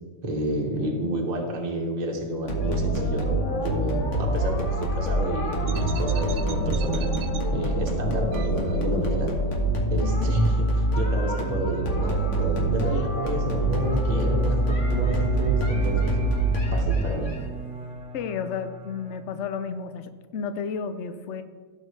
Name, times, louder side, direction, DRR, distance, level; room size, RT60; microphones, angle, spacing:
voice 1, 0.2-7.1 7.5-9.3 9.9-16.1 16.7-17.4, right 1 dB, 25° right, 0 dB, 1.1 m, -29 dB
sound 1, 2.5-17.4, right 1 dB, 45° left, 1.7 m, -25 dB
sound 2, 5.7-7.4 8.3-9.2, right 8 dB, 75° right, 0.8 m, -35 dB
voice 2, 10.0-10.3 18.1-21.4, left 6 dB, 85° left, 10 dB, 0.6 m, -32 dB
Bowed string instrument, 13.2-19.8, right 2 dB, 5° right, 0.5 m, -37 dB
16.5 x 6.6 x 3.2 m, 1.5 s
omnidirectional pair, 2.0 m